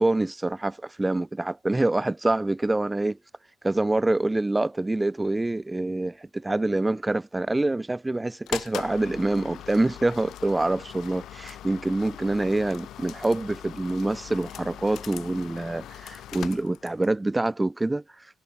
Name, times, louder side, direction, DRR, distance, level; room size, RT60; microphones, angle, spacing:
voice 1, 0.0-3.2 3.6-18.0, right 2 dB, 15° right, 1.7 m, -26 dB
sound 1, 8.5-17.2, left 12 dB, 60° left, 2.4 m, -41 dB
figure-of-eight pair, 40°, 0 cm